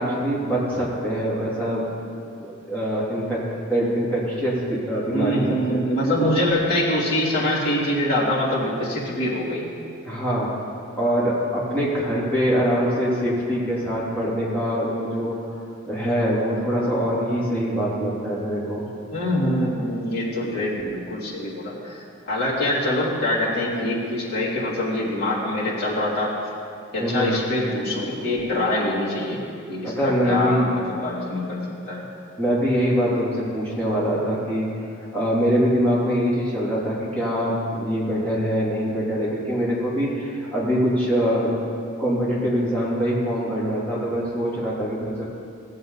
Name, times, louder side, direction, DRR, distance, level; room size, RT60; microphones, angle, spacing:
voice 1, 0.0-1.8 2.4-3.4 3.7-5.4 5.7-5.8 10.0-10.5 11.0-15.4 15.8-18.8 27.0-27.4 29.8-30.7 32.4-34.7 35.0-41.5 42.0-45.2, equal, 10° left, -8 dB, 3.0 m, -23 dB
voice 2, 5.1-9.7 19.1-26.3 26.9-29.4 29.7-32.0, left 1 dB, 50° left, -8 dB, 3.1 m, -24 dB
17.5 x 7.9 x 4.1 m, 2.6 s
head